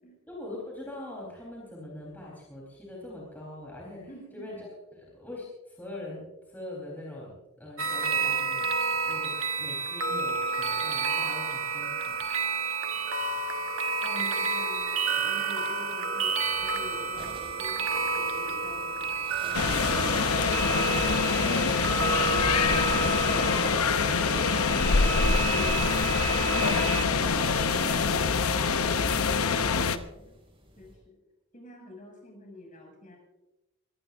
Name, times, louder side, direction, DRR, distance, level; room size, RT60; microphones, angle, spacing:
voice 1, 0.3-12.2 19.8-26.3 26.9-28.8, left 1 dB, 10° left, -5 dB, 4.0 m, -42 dB
voice 2, 4.1-4.6 14.0-19.7 30.1-30.4 30.8-31.2 31.5-33.2, left 1 dB, 35° left, 0 dB, 7.0 m, -47 dB
sound 1, 7.8-27.0, right 4 dB, 70° right, 1.3 m, -30 dB
sound 2, 16.4-30.9, right 1 dB, 25° right, 5.8 m, -49 dB
sound 3, 19.5-30.0, left 5 dB, 80° left, 0.8 m, -25 dB
23.5 x 18.0 x 2.6 m, 1.0 s
head